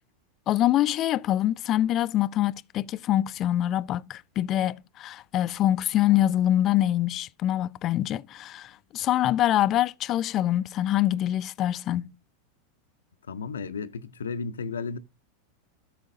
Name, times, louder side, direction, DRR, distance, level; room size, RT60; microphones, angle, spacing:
voice 1, 0.5-12.1, left 13 dB, 40° left, 0.4 m, -25 dB
voice 2, 13.3-15.0, left 5 dB, 90° left, 0.5 m, -33 dB
14.0 x 6.4 x 2.6 m
hypercardioid pair, 105°, 0 cm